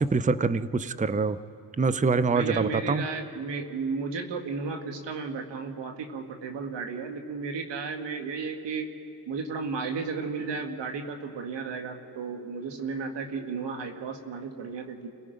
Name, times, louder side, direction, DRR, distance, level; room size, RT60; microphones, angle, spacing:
voice 1, 0.0-1.4 1.8-3.0, right 4 dB, 20° right, 14 dB, 0.7 m, -25 dB
voice 2, 2.2-8.9 9.3-15.1, right 4 dB, 80° right, 4 dB, 1.8 m, -34 dB
29.5 x 17.5 x 5.2 m, 2.5 s
supercardioid pair, 45°, 42 cm